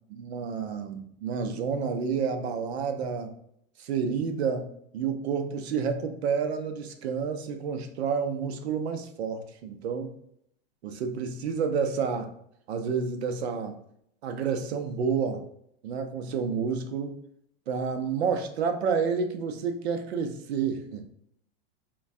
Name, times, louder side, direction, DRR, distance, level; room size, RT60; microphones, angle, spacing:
voice 1, 0.1-3.3 3.8-10.1 10.8-12.3 12.7-13.8 14.2-15.4 15.8-17.2 17.7-21.1, right 6 dB, 85° right, 6 dB, 0.6 m, -29 dB
2.5 x 2.2 x 3.2 m, 0.70 s
supercardioid pair, 165°, 31 cm